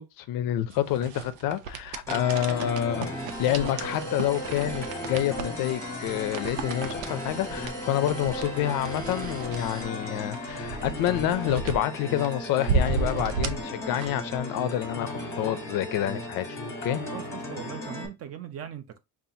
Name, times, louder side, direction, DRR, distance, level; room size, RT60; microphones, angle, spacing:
voice 1, 0.0-3.1 3.4-17.0, left 12 dB, 50° left, 0.5 m, -28 dB
sound 1, 0.7-14.4, right 5 dB, 90° right, 0.7 m, -34 dB
sound 2, 2.1-18.1, left 1 dB, 5° left, 0.7 m, -36 dB
sound 3, 2.9-10.0, right 4 dB, 60° right, 1.4 m, -44 dB
voice 2, 17.0-19.0, right 9 dB, 35° right, 0.5 m, -40 dB
5.5 x 2.5 x 2.6 m
cardioid pair, 175°, 44 cm